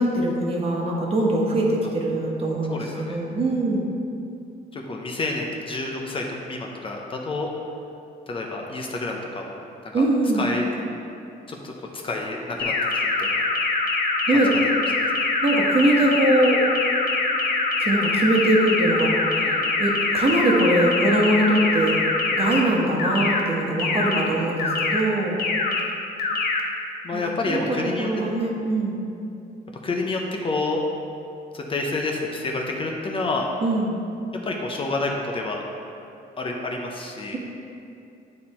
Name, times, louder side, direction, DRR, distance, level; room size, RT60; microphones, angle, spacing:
voice 1, 0.0-3.8 9.9-10.5 14.3-14.5 15.4-16.6 17.8-19.1 19.8-21.9 22.4-25.4 27.1-29.0 33.6-34.0, right 1 dB, 35° right, -2 dB, 1.3 m, -22 dB
voice 2, 2.7-3.2 4.7-7.5 8.3-9.6 9.8-10.1 10.3-10.7 11.5-11.7 12.0-13.5 14.3-14.4 19.4-19.6 23.9-24.4 27.0-28.1 29.8-30.8 31.5-33.5 34.4-35.6 36.4-37.4, left 3 dB, 30° left, 0 dB, 0.7 m, -29 dB
sound 1, 12.6-22.6 23.0-23.4 23.8-24.2 24.6-25.0 25.4-25.8 26.2-26.6, left 3 dB, 60° left, 1.0 m, -23 dB
9.6 x 4.3 x 4.3 m, 2.6 s
cardioid pair, 130°, 17 cm